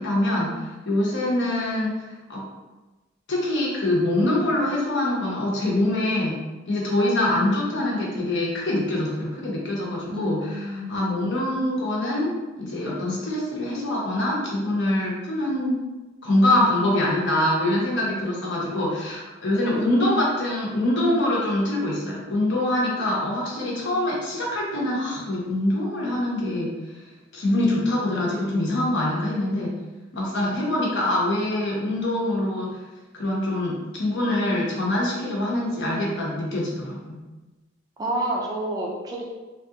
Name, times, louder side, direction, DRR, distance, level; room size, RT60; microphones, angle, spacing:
voice 1, 0.0-2.0 2.3-2.4 3.3-12.3 12.6-15.8 16.2-26.8 27.3-29.8 30.1-32.8 33.1-37.2, left 1 dB, 60° left, -4 dB, 0.9 m, -24 dB
voice 2, 10.1-10.9 30.4-30.6 38.0-39.2, right 1 dB, 20° right, -2 dB, 0.4 m, -29 dB
3.3 x 2.4 x 2.8 m, 1.2 s
head